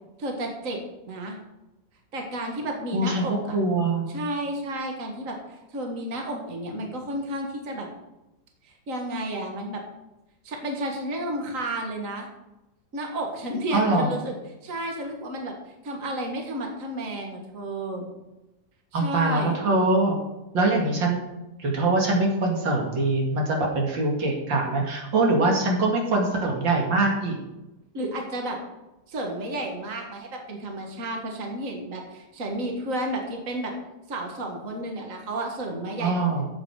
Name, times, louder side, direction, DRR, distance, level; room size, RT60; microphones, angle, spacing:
voice 1, 0.2-0.8 1.1-1.4 2.1-3.6 4.1-7.9 8.6-9.8 10.4-12.3 12.9-14.4 14.6-15.5 15.8-18.1 18.9-19.6 27.9-28.6 29.1-33.7 34.1-36.2, right 1 dB, 45° right, 2 dB, 2.0 m, -32 dB
voice 2, 2.9-4.0 13.7-14.1 18.9-20.2 20.5-21.2 21.6-27.4 36.0-36.4, right 2 dB, 85° right, 0 dB, 2.8 m, -23 dB
13.0 x 7.8 x 4.9 m, 0.99 s
omnidirectional pair, 2.0 m